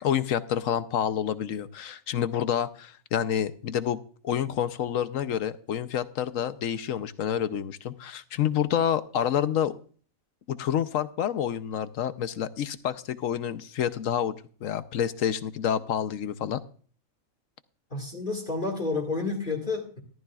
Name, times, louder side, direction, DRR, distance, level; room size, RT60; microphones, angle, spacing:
voice 1, 0.0-9.8 10.5-16.6, left 9 dB, 75° left, 13 dB, 1.1 m, -28 dB
voice 2, 17.9-20.0, left 3 dB, 35° left, 2 dB, 2.1 m, -30 dB
14.0 x 14.0 x 2.4 m, 0.43 s
omnidirectional pair, 1.4 m